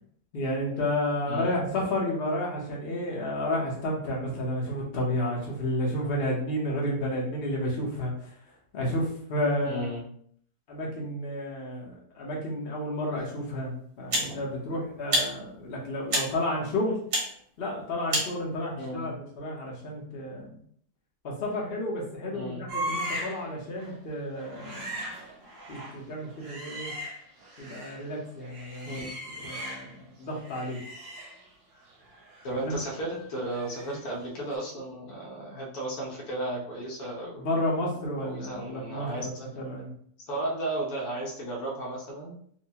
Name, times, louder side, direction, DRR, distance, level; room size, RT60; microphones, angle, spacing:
voice 1, 0.3-8.3 8.7-9.9 10.7-17.0 17.6-20.5 21.2-25.1 25.7-26.9 27.6-29.0 29.4-30.8 32.6-32.8 37.4-39.9, left 1 dB, 45° left, -3 dB, 1.0 m, -31 dB
voice 2, 9.6-10.0 14.2-14.4 18.8-19.1 22.3-22.6 28.8-29.1 29.4-29.5 32.4-37.5 38.2-39.3 40.3-42.3, right 1 dB, 70° left, -4 dB, 1.3 m, -34 dB
sound 1, 13.2-13.3 14.1-14.3 15.1-15.3 16.1-16.3 17.1-17.3 18.1-18.3, equal, 40° right, 1.0 m, -26 dB
sound 2, 22.7-23.5 23.8-24.0 24.4-28.0 28.4-30.0 30.3-34.1 34.4-34.6, right 1 dB, 75° right, 1.4 m, -39 dB
4.5 x 2.2 x 2.8 m, 0.64 s
omnidirectional pair, 1.7 m